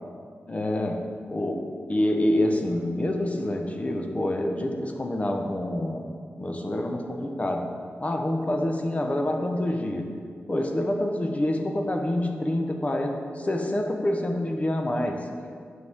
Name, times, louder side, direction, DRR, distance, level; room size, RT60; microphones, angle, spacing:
voice 1, 0.5-6.1 6.4-7.7 8.0-10.1 10.5-15.3, left 1 dB, 30° left, 3 dB, 0.9 m, -27 dB
9.7 x 6.3 x 3.6 m, 2.2 s
cardioid pair, 65°, 5 cm